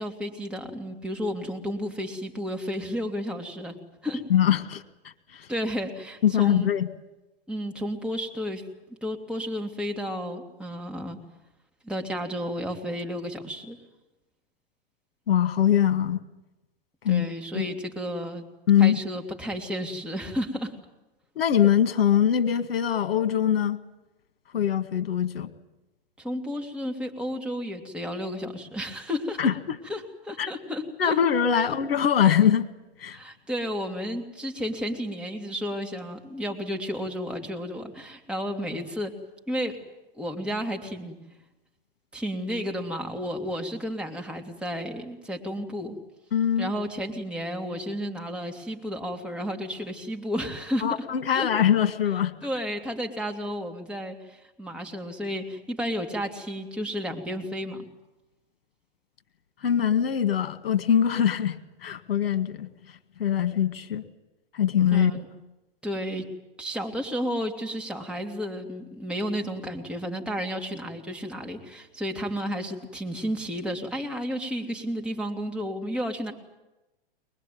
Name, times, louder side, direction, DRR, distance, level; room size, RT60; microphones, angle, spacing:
voice 1, 0.0-3.8 4.0-4.2 5.5-6.7 7.5-8.6 9.0-11.2 11.8-13.8 17.1-18.4 18.8-20.7 26.2-29.4 29.9-31.2 31.7-31.8 33.1-39.1 39.5-39.8 40.2-41.2 42.1-46.0 46.6-51.0 51.3-51.5 52.4-57.8 64.9-65.3 65.8-66.3 66.6-76.3, equal, 5° right, 2 dB, 2.9 m, -32 dB
voice 2, 4.3-5.5 6.2-6.9 15.3-16.2 17.0-17.3 17.5-17.7 18.7-19.0 21.4-23.8 24.5-25.5 29.4-29.8 30.4-30.5 31.0-32.7 33.0-33.2 46.3-46.7 50.8-52.3 59.6-62.7 63.2-64.0 64.5-65.1, left 9 dB, 75° left, 10 dB, 2.0 m, -23 dB
23.0 x 21.0 x 9.4 m, 1.0 s
hypercardioid pair, 120°, 29 cm